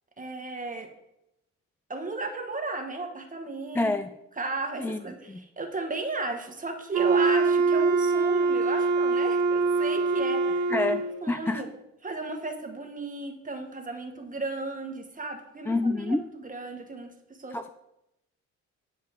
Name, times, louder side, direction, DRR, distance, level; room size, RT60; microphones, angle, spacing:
voice 1, 0.2-0.9 1.9-3.9 4.4-10.6 11.2-11.7 12.0-17.1 17.4-17.6, right 3 dB, 25° right, 4 dB, 1.3 m, -34 dB
voice 2, 3.7-4.1 4.8-5.0 5.3-5.4 10.7-11.0 11.3-11.6 15.7-16.2 17.5-17.7, left 2 dB, 10° left, 10 dB, 0.3 m, -27 dB
Wind instrument woodwind instrument, 6.9-11.2, right 4 dB, 75° right, 1.1 m, -24 dB
9.4 x 5.4 x 5.2 m, 0.85 s
cardioid pair, 90°, 30 cm